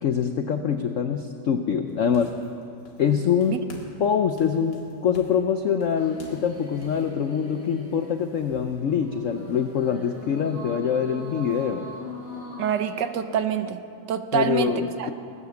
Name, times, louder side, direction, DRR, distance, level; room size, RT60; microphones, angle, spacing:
voice 1, 0.0-2.3 3.0-3.6 4.0-11.8 14.3-15.1, left 7 dB, 80° left, 7 dB, 0.7 m, -24 dB
sound 1, 1.9-3.2 3.4-4.1 4.4-7.0, left 2 dB, 65° left, 2.6 m, -48 dB
sound 2, 5.9-13.3, equal, 30° left, 2.5 m, -42 dB
voice 2, 12.6-13.8 14.1-15.1, right 8 dB, 70° right, 10 dB, 1.3 m, -26 dB
19.5 x 10.0 x 7.1 m, 2.6 s
omnidirectional pair, 2.1 m